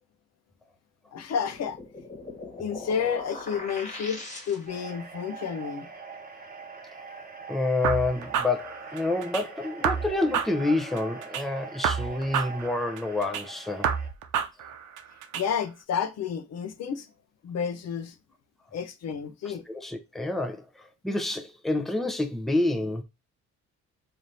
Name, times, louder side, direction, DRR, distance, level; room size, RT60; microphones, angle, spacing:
voice 1, 1.1-1.8 2.6-4.2 4.5-5.9 15.4-17.1 17.4-18.1 18.7-19.6, left 7 dB, 60° left, 0.6 m, -30 dB
sound 1, 1.3-4.9, left 2 dB, 25° left, 1.3 m, -41 dB
sound 2, 4.7-14.1, right 5 dB, 30° right, 1.1 m, -43 dB
voice 2, 7.5-13.9 19.7-23.0, left 2 dB, ahead, 0.6 m, -28 dB
sound 3, 7.8-9.4 9.8-11.4 11.8-13.4 13.8-15.4, right 8 dB, 85° right, 0.6 m, -30 dB
3.3 x 2.6 x 4.0 m
cardioid pair, 90°, 30 cm